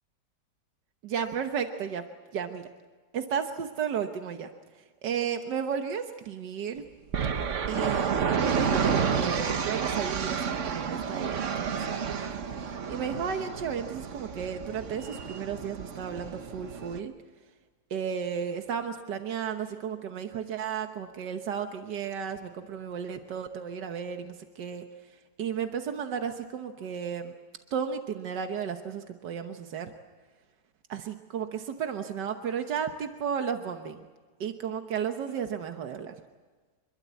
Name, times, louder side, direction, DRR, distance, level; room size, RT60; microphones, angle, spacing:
voice 1, 1.0-2.0 2.3-2.7 3.1-6.8 7.7-12.0 12.5-17.1 17.9-27.3 27.7-29.9 30.9-34.0 34.4-36.1, right 7 dB, 90° right, 6 dB, 1.8 m, -34 dB
sound 1, 7.1-17.0, right 6 dB, 50° right, 1.3 m, -30 dB
26.5 x 22.0 x 8.3 m, 1.4 s
omnidirectional pair, 1.8 m